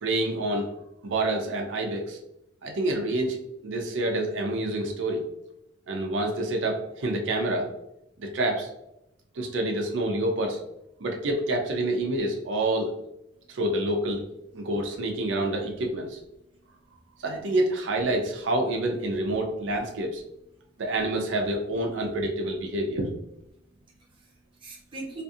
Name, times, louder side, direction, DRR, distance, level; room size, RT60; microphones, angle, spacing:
voice 1, 0.0-0.7 1.0-2.2 2.6-5.2 5.9-7.7 8.2-8.7 9.3-10.6 11.0-12.9 13.5-14.2 14.5-16.2 17.2-20.2 20.8-23.1, right 1 dB, 75° right, 2 dB, 0.5 m, -27 dB
voice 2, 16.3-17.2 20.6-20.8 23.5-25.2, right 3 dB, 25° right, -3 dB, 0.6 m, -45 dB
2.6 x 2.5 x 2.4 m, 0.82 s
head